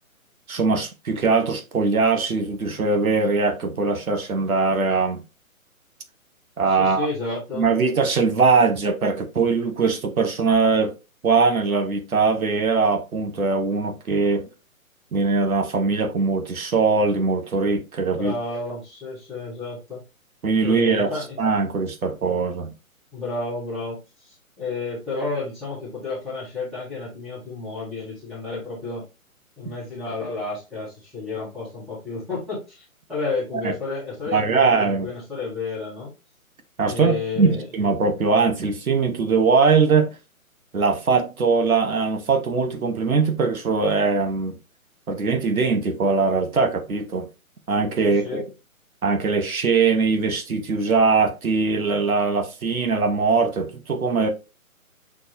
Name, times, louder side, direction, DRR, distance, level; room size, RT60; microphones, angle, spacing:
voice 1, 0.5-5.2 6.6-7.1 7.5-10.9 11.2-14.5 15.1-18.3 20.4-21.1 21.4-22.7 33.6-33.7 34.3-35.1 36.8-40.1 40.7-44.6 45.1-47.3 47.7-48.4 49.0-54.3, right 4 dB, 75° right, 1.2 m, -21 dB
voice 2, 6.7-7.8 18.1-20.0 20.6-21.4 23.1-29.0 29.6-32.8 33.1-36.1 36.9-37.7 48.0-48.4, left 3 dB, ahead, 0.7 m, -31 dB
6.4 x 2.4 x 3.0 m
figure-of-eight pair, 140°, 43 cm